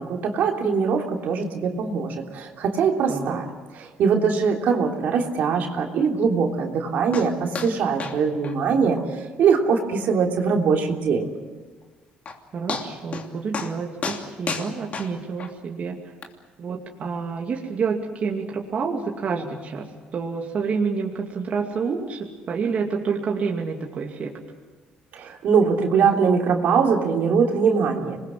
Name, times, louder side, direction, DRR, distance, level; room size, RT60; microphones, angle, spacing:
voice 1, 0.0-3.5 3.7-11.3 25.1-28.2, right 5 dB, 65° right, 2 dB, 3.2 m, -22 dB
sound 1, 7.1-7.3 7.5-7.7 8.0-8.2 8.4-8.5 9.0-9.1 9.5-9.6 10.0-10.1 11.8-11.9 12.3-12.4 12.7-13.3 13.5-13.7 14.0-15.5 16.2-16.3, left 5 dB, 45° left, 2.9 m, -31 dB
voice 2, 12.5-16.0 16.6-24.4, right 5 dB, 45° right, 0 dB, 2.6 m, -28 dB
27.0 x 21.0 x 7.7 m, 1.3 s
cardioid pair, 100°, 3 cm